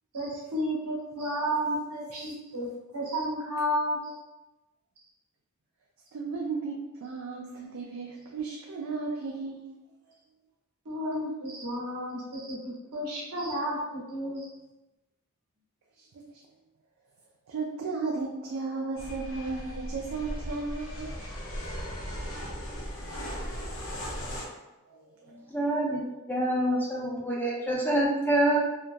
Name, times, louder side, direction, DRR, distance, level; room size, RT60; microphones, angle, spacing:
voice 1, 0.1-4.1 10.8-14.5, equal, 90° right, -4 dB, 0.9 m, -32 dB
voice 2, 6.1-9.7 16.0-16.4 17.5-21.2 22.0-22.7 24.9-25.4, right 4 dB, 65° right, -1 dB, 0.3 m, -35 dB
sound 1, 19.0-24.5, equal, 65° left, 0.6 m, -37 dB
voice 3, 25.5-26.0 26.3-28.6, right 1 dB, 10° left, -4 dB, 0.5 m, -26 dB
2.8 x 2.2 x 2.5 m, 1.0 s
head